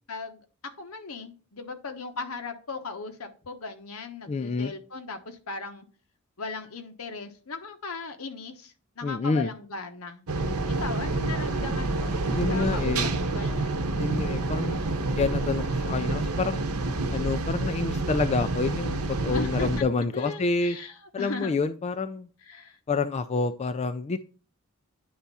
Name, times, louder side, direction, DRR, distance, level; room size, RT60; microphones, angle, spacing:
voice 1, 0.1-0.4 0.8-5.8 6.4-10.2 10.8-13.9 19.3-19.8 20.1-21.6 22.5-22.8, left 3 dB, 75° left, 6 dB, 1.1 m, -38 dB
voice 2, 4.3-4.7 9.0-9.5 12.3-13.1 14.0-16.6 17.1-20.8 21.1-22.3 22.9-24.2, left 4 dB, 30° left, 9 dB, 0.3 m, -28 dB
sound 1, 10.3-19.8, right 2 dB, 85° right, 0.8 m, -28 dB
10.0 x 3.5 x 4.1 m, 0.38 s
head